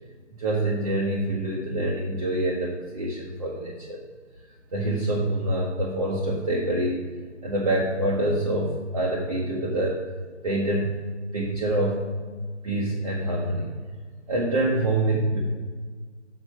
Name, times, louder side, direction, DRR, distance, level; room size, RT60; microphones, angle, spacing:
voice 1, 0.4-4.0 4.7-7.0 7.4-10.0 10.4-11.0 11.3-12.0 12.6-13.7 14.3-15.4, right 1 dB, 30° right, -4 dB, 1.0 m, -26 dB
6.6 x 4.9 x 6.2 m, 1.5 s
hypercardioid pair, 165°, 36 cm